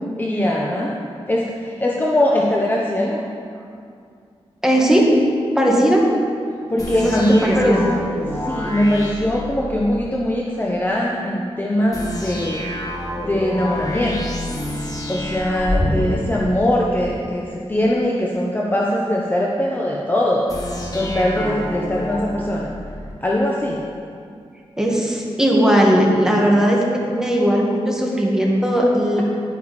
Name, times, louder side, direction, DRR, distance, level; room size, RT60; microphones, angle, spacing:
voice 1, 0.2-1.0 1.3-3.3 6.7-8.0 8.4-12.6 13.2-14.2 15.1-20.4 20.9-22.7 23.2-23.8, left 1 dB, 20° left, -3 dB, 0.9 m, -21 dB
voice 2, 4.6-5.1 5.6-6.0 6.9-7.8 24.8-26.8 27.1-29.2, equal, 5° right, -2 dB, 2.0 m, -17 dB
sound 1, 6.8-10.1 11.9-17.1 20.5-23.1, left 1 dB, 35° left, 2.2 m, -28 dB
11.5 x 8.7 x 4.3 m, 2.3 s
wide cardioid pair, 85°, 11 cm